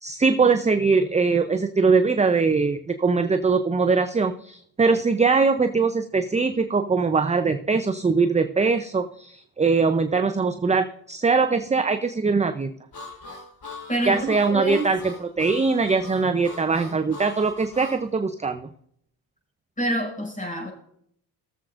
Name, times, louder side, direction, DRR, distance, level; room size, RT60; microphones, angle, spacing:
voice 1, 0.0-12.7 14.1-18.7, right 4 dB, 15° right, 8 dB, 0.6 m, -22 dB
Harmonica, 12.9-18.0, left 3 dB, 50° left, 4.0 m, -40 dB
voice 2, 13.9-14.9 19.8-20.7, right 1 dB, 15° left, 1 dB, 5.5 m, -27 dB
22.0 x 7.5 x 2.5 m, 0.68 s
supercardioid pair, 60°, 49 cm